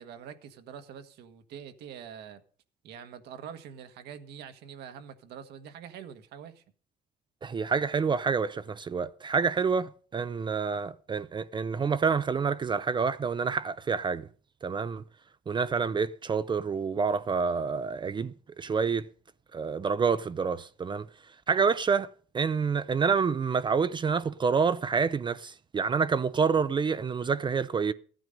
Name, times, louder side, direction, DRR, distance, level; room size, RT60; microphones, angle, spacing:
voice 1, 0.0-2.4 2.8-6.6, right 8 dB, 75° right, 1.4 m, -45 dB
voice 2, 7.4-14.3 14.6-15.0 15.5-19.0 19.5-21.1 21.5-22.1 22.3-27.9, right 5 dB, 30° right, 0.5 m, -28 dB
14.0 x 9.3 x 5.2 m
cardioid pair, 110°, 17 cm